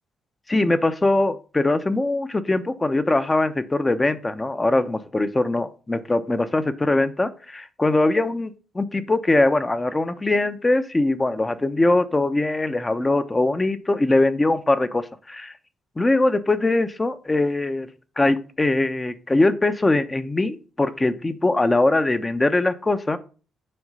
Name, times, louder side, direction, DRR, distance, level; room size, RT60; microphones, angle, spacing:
voice 1, 0.5-15.5 16.0-17.9 18.2-23.2, left 2 dB, 20° left, 11 dB, 0.9 m, -22 dB
7.8 x 4.9 x 5.5 m, 0.37 s
cardioid pair, 90°, 0 cm